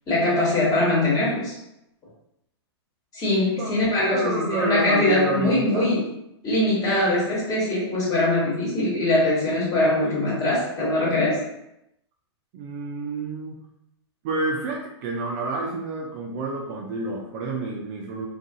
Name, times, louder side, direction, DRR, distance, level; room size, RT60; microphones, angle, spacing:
voice 1, 0.1-1.5 3.1-6.0 6.4-11.4, left 2 dB, 25° left, -6 dB, 1.2 m, -22 dB
voice 2, 4.1-6.0 12.5-13.6 14.2-18.3, right 3 dB, 40° right, 0 dB, 0.4 m, -29 dB
2.4 x 2.4 x 2.7 m, 0.82 s
hypercardioid pair, 125°, 14 cm